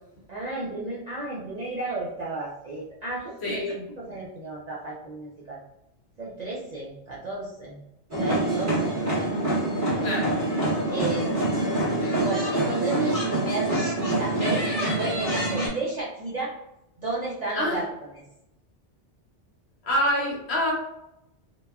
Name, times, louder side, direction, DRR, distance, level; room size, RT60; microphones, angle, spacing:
voice 1, 0.3-3.6 4.0-5.6 6.2-7.8 8.1-9.3 10.9-11.7 12.2-13.7 14.2-16.5 17.0-17.8 18.1-18.2, right 2 dB, 55° right, -6 dB, 0.4 m, -33 dB
voice 2, 3.4-3.9 10.0-10.4 17.5-17.8 19.8-20.7, left 1 dB, 70° left, -3 dB, 1.0 m, -26 dB
sound 1, 8.1-15.7, right 1 dB, 15° right, 1.1 m, -25 dB
2.9 x 2.1 x 2.2 m, 0.87 s
omnidirectional pair, 1.2 m